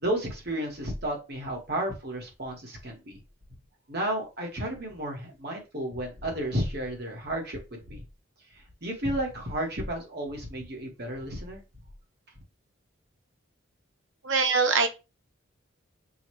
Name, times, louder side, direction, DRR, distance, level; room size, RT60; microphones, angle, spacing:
voice 1, 0.0-3.2 3.9-8.0 8.8-11.6, right 1 dB, 50° right, 0 dB, 1.4 m, -32 dB
voice 2, 14.2-14.9, right 4 dB, 65° right, 6 dB, 0.8 m, -22 dB
6.2 x 2.5 x 3.1 m, 0.27 s
head